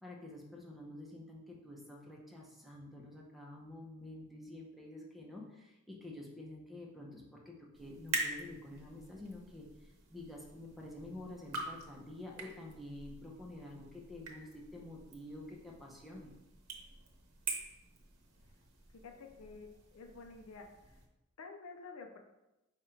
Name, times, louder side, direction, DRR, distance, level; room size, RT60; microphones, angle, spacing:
voice 1, 0.0-16.3, left 1 dB, ahead, -2 dB, 0.7 m, -49 dB
sound 1, 7.7-21.1, right 3 dB, 80° right, 0.9 m, -46 dB
voice 2, 19.0-20.7 21.4-22.2, left 4 dB, 70° left, 4 dB, 0.5 m, -50 dB
5.0 x 2.4 x 4.3 m, 0.97 s
head